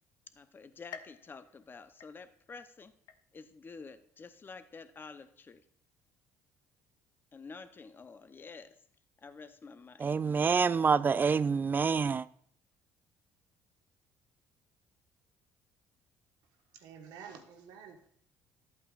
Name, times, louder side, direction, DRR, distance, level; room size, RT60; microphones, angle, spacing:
voice 1, 0.3-3.0 3.3-5.6 7.3-8.8 9.2-10.1, left 4 dB, 35° left, 0.7 m, -49 dB
sound 1, 0.9-2.6 3.1-3.7 4.2-4.3 5.2-5.3, left 8 dB, 70° left, 0.6 m, -52 dB
voice 2, 10.0-12.3, right 5 dB, 30° right, 0.3 m, -27 dB
voice 3, 16.7-18.1, right 7 dB, 75° right, 1.3 m, -50 dB
11.5 x 8.3 x 2.5 m
supercardioid pair, 70°, 7 cm